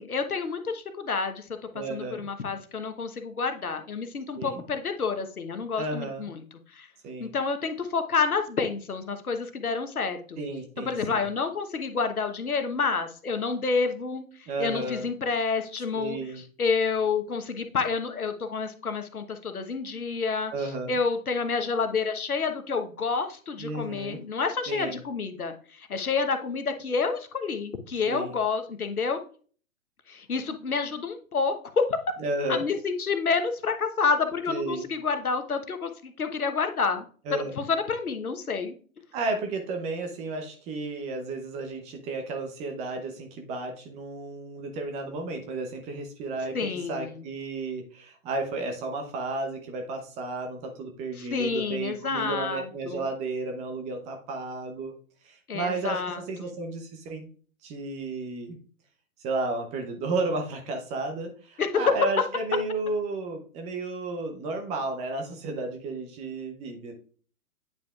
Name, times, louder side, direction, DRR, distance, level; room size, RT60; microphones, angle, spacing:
voice 1, 0.0-6.9 7.2-10.4 10.8-20.5 20.9-29.2 30.1-32.0 32.5-37.0 37.3-38.7 46.5-47.2 51.2-53.1 55.5-56.5 61.6-61.8, left 5 dB, 80° left, 7 dB, 1.2 m, -29 dB
voice 2, 1.7-2.3 4.4-4.6 5.8-6.3 7.0-7.3 10.4-11.3 14.5-15.1 15.9-16.4 20.5-21.0 23.6-24.2 24.7-25.0 28.0-28.3 32.2-32.6 34.5-34.8 37.3-37.5 39.1-54.9 55.2-57.3 57.6-58.6 59.2-67.0, right 2 dB, 15° right, 5 dB, 0.7 m, -33 dB
9.1 x 5.2 x 2.4 m, 0.42 s
figure-of-eight pair, 125°, 43 cm